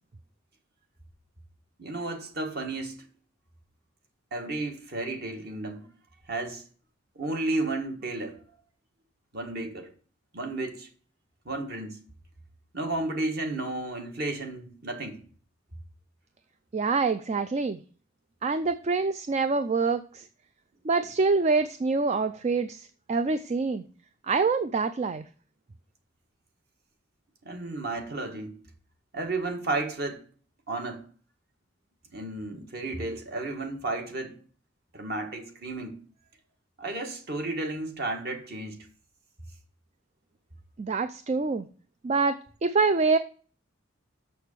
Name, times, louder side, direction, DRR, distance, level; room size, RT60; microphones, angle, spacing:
voice 1, 1.8-3.1 4.3-5.9 6.3-6.6 7.2-8.4 9.3-9.9 10.3-10.9 11.5-12.0 12.7-15.2 27.5-28.6 29.1-30.2 30.7-31.0 32.1-34.3 34.9-36.0 36.8-38.8, right 2 dB, 50° right, 1.7 m, -32 dB
voice 2, 16.7-17.8 18.4-20.3 20.8-23.8 24.3-25.2 40.8-41.7 42.0-43.2, right 4 dB, 35° right, 0.4 m, -26 dB
6.6 x 6.4 x 6.7 m
head